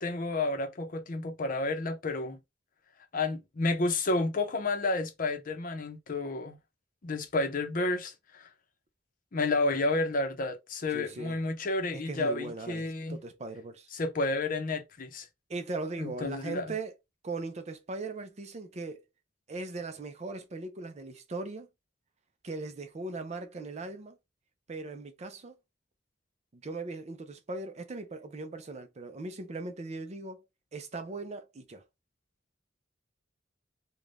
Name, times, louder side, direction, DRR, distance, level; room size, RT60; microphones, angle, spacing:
voice 1, 0.0-2.4 3.1-6.6 7.0-8.5 9.3-13.2 13.9-15.3 16.0-16.7, left 2 dB, 50° left, 0.6 m, -31 dB
voice 2, 10.9-11.4 11.9-13.9 15.5-16.9 17.2-19.0 19.5-21.7 22.4-24.2 24.7-25.5 26.5-30.5 30.7-31.8, right 3 dB, 40° right, 0.5 m, -39 dB
2.5 x 2.2 x 3.3 m
head